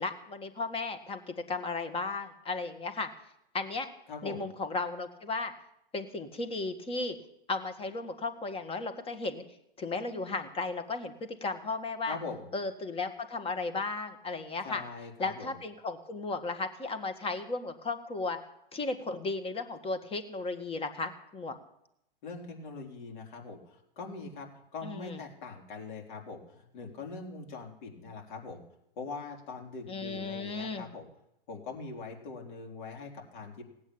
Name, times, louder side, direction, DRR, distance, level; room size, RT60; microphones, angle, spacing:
voice 1, 0.0-3.1 3.5-3.9 4.2-5.5 5.9-7.2 7.5-9.4 9.8-12.2 12.5-14.8 15.2-18.4 18.7-21.6 24.8-25.2 29.9-30.9, left 3 dB, 20° left, 8 dB, 1.9 m, -35 dB
voice 2, 4.1-4.5 12.1-12.4 14.6-15.5 22.2-28.6 29.0-31.1 31.5-33.6, left 4 dB, 55° left, 2 dB, 4.1 m, -42 dB
18.0 x 8.6 x 8.8 m, 0.79 s
figure-of-eight pair, 100°, 29 cm